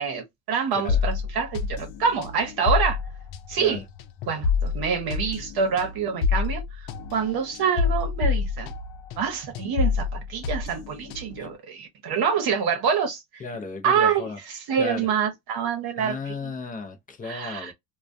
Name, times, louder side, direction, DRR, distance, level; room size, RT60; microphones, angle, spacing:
voice 1, 0.0-3.0 3.5-3.8 4.3-8.7 9.2-13.4 13.8-14.3 14.7-16.3 17.3-17.7, right 6 dB, 50° right, 0.9 m, -26 dB
sound 1, 0.9-9.3 9.5-11.5, left 5 dB, 75° left, 0.6 m, -27 dB
voice 2, 3.5-3.8 11.4-11.5 13.4-14.4 14.8-15.1 16.0-17.7, left 4 dB, 20° left, 0.5 m, -35 dB
2.3 x 2.1 x 2.5 m
supercardioid pair, 100°, 48 cm